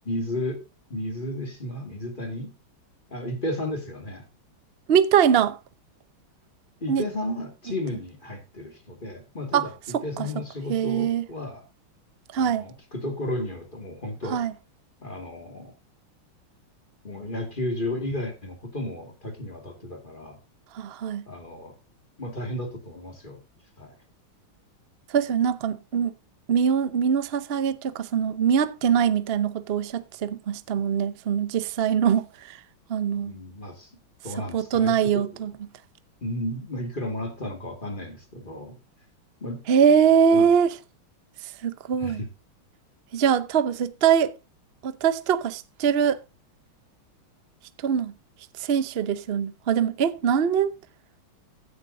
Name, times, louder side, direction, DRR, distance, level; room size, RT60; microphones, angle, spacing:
voice 1, 0.0-0.6 0.9-2.5 3.1-4.2 6.8-11.6 12.4-14.4 15.0-15.7 17.0-20.4 21.3-21.7 22.2-23.4 23.8-24.0 33.2-33.9 34.2-35.4 36.2-38.8 39.4-39.6 40.3-40.5 42.0-42.3, left 1 dB, 25° left, 2.3 m, -33 dB
voice 2, 4.9-5.6 6.9-7.0 9.5-9.7 9.9-10.3 10.7-11.2 12.3-12.7 14.3-14.5 20.7-21.2 25.1-26.1 26.5-32.6 32.9-33.3 34.5-35.5 39.7-40.7 41.6-42.2 43.1-44.3 44.8-46.2 47.8-48.1 48.6-50.7, right 8 dB, 90° right, 0.5 m, -22 dB
16.0 x 9.6 x 2.7 m
omnidirectional pair, 2.3 m